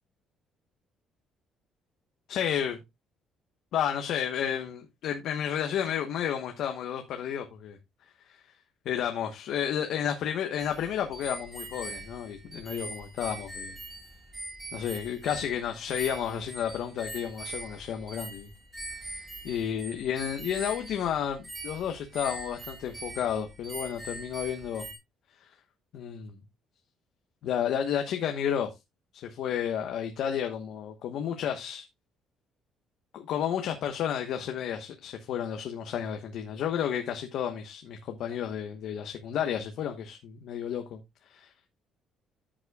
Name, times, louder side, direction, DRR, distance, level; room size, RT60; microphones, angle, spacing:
voice 1, 2.3-2.8 3.7-7.8 8.3-8.4 8.8-13.8 14.7-18.5 19.4-24.9 25.4-25.5 25.9-26.3 27.4-28.7 29.1-31.8 33.1-41.0 41.3-41.5, left 9 dB, 60° left, 1.1 m, -31 dB
sound 1, 10.6-25.0, right 1 dB, 10° right, 3.9 m, -42 dB
13.0 x 7.6 x 2.3 m
cardioid pair, 165°, 0 cm